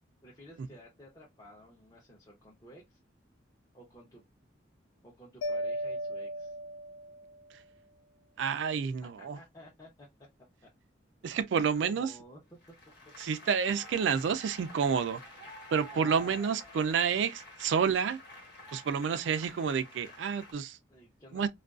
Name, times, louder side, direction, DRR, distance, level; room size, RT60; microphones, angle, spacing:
voice 1, 0.2-3.0 3.7-4.3 5.0-6.6 9.0-10.7 11.2-12.4 15.4-15.5 15.9-16.4 20.9-21.5, equal, 20° left, 0.6 m, -53 dB
Mallet percussion, 5.4-7.5, equal, 85° left, 0.3 m, -36 dB
voice 2, 8.4-9.4 11.2-12.1 13.2-15.2 15.7-18.2 18.7-20.8 21.3-21.5, right 6 dB, 70° right, 0.3 m, -29 dB
Applause, 12.6-20.5, equal, 60° left, 1.0 m, -49 dB
2.4 x 2.2 x 2.3 m
head